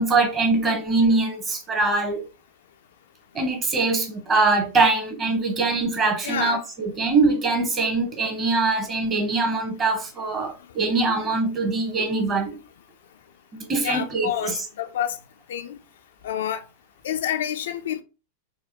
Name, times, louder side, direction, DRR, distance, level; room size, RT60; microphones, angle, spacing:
voice 1, 0.0-2.2 3.3-12.6 13.5-14.7, right 3 dB, 25° right, 1.0 m, -23 dB
voice 2, 6.2-6.6 13.8-15.2 15.5-15.8 16.2-16.6 17.0-18.0, left 10 dB, 60° left, 0.3 m, -28 dB
4.1 x 2.2 x 2.9 m
figure-of-eight pair, 90°, 0 cm